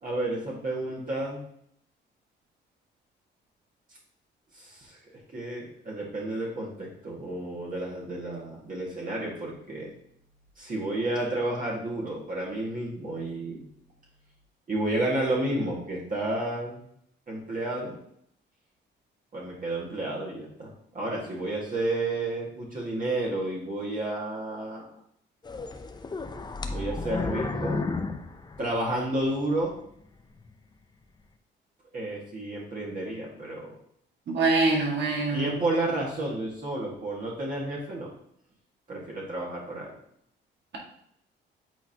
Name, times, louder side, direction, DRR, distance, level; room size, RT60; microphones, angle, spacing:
voice 1, 0.0-1.4 4.5-5.0 5.3-9.9 10.6-13.6 14.7-16.8 17.3-18.0 19.3-24.8 26.7-27.8 28.6-29.7 31.9-33.7 35.3-38.1 38.9-39.9, right 1 dB, 45° right, -4 dB, 1.8 m, -31 dB
sound 1, 25.4-29.2 29.7-29.8 30.4-30.5, left 3 dB, 20° left, 0.6 m, -32 dB
voice 2, 34.3-35.5, right 3 dB, 60° right, -1 dB, 1.8 m, -24 dB
8.1 x 4.2 x 2.8 m, 0.70 s
cardioid pair, 90°, 20 cm